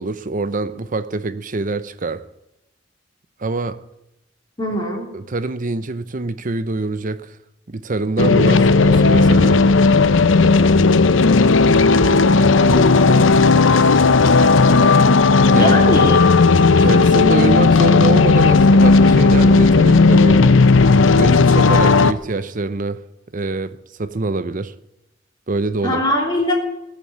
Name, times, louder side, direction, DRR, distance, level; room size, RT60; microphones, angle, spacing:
voice 1, 0.0-2.2 3.4-3.8 5.1-7.3 7.7-9.6 15.5-15.8 16.8-20.5 21.1-23.0 23.3-24.7 25.5-26.0, right 3 dB, 45° right, 0.7 m, -24 dB
voice 2, 4.6-5.1 12.5-13.3 15.5-16.2 25.8-26.5, equal, 25° left, 3.2 m, -21 dB
sound 1, 8.2-22.1, left 3 dB, 85° left, 0.7 m, -13 dB
18.5 x 6.9 x 9.5 m
head